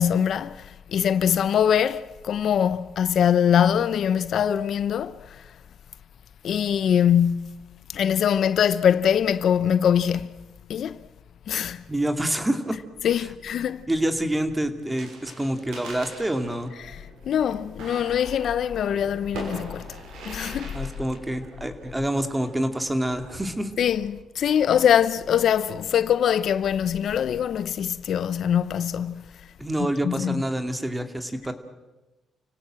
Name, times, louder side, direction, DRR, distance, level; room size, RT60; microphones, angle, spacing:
voice 1, 0.0-5.2 6.4-7.6 7.9-10.4 10.7-11.0 11.5-11.8 13.0-13.8 16.8-17.0 17.3-19.9 20.2-20.8 23.8-29.3 30.0-30.4, left 9 dB, 65° left, 0.7 m, -23 dB
voice 2, 11.9-12.8 13.9-16.7 20.7-23.7 29.6-31.5, right 1 dB, 10° right, 2.4 m, -27 dB
sound 1, 14.9-24.1, right 3 dB, 80° right, 6.3 m, -43 dB
30.0 x 17.5 x 7.7 m
cardioid pair, 90°, 0 cm